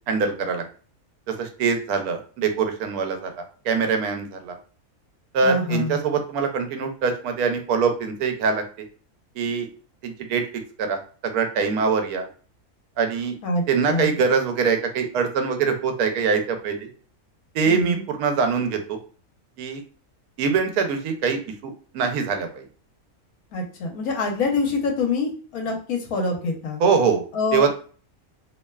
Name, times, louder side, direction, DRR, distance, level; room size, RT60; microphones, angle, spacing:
voice 1, 0.1-0.6 1.3-4.6 5.3-8.6 9.4-9.7 10.0-10.4 10.8-12.3 13.0-13.4 13.7-16.9 17.5-19.0 19.6-19.8 20.4-22.6 26.8-27.2 27.5-27.7, right 5 dB, 80° right, 6 dB, 1.1 m, -23 dB
voice 2, 5.4-6.0 13.4-13.6 13.9-14.1 17.7-18.0 23.5-26.8 27.3-27.7, left 3 dB, 80° left, 2 dB, 1.2 m, -25 dB
2.8 x 2.1 x 2.2 m, 0.41 s
omnidirectional pair, 1.5 m